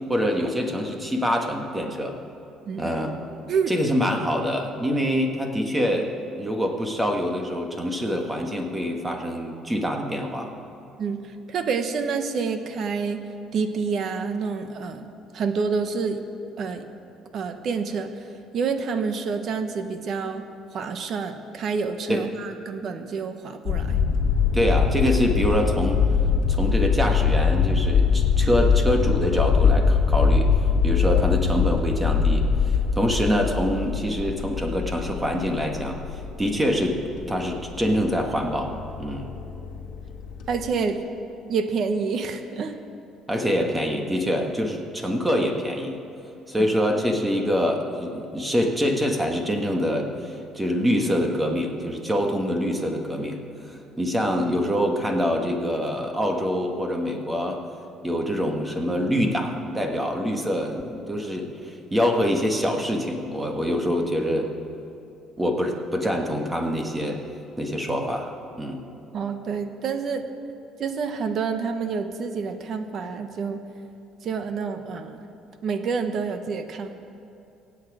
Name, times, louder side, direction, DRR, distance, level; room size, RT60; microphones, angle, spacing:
voice 1, 0.1-2.2 2.8-3.2 3.7-6.1 6.4-10.5 22.1-22.3 24.5-26.0 26.5-30.5 30.8-36.0 36.4-37.0 37.3-38.7 39.0-39.3 43.3-46.0 46.5-57.6 58.0-64.5 65.4-67.2 67.6-68.3 68.6-68.8, equal, 10° right, 2 dB, 1.6 m, -25 dB
voice 2, 11.5-13.2 13.5-15.0 15.3-16.2 16.6-16.8 17.3-18.1 18.5-20.4 20.7-24.0 40.5-41.0 41.5-42.8 46.6-46.7 69.1-70.2 70.8-73.6 74.2-75.2 75.6-76.9, right 5 dB, 50° right, 8 dB, 1.1 m, -28 dB
sound 1, 23.7-40.7, left 5 dB, 60° left, 1.5 m, -23 dB
24.5 x 8.6 x 5.0 m, 2.7 s
cardioid pair, 135°, 0 cm